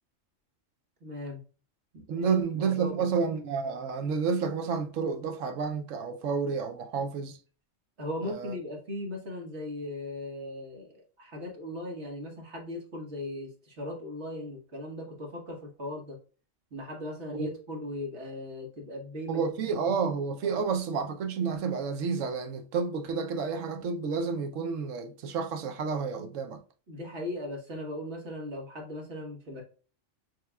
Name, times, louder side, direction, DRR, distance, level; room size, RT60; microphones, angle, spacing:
voice 1, 1.0-1.4 1.9-3.1 8.0-16.2 16.7-19.4 19.8-19.9 20.4-20.6 26.9-29.6, left 1 dB, 60° right, 1.6 m, -38 dB
voice 2, 2.1-7.4 8.2-8.5 17.3-17.5 19.3-26.6, right 5 dB, 80° right, 1.1 m, -30 dB
6.4 x 3.0 x 2.3 m
omnidirectional pair, 1.3 m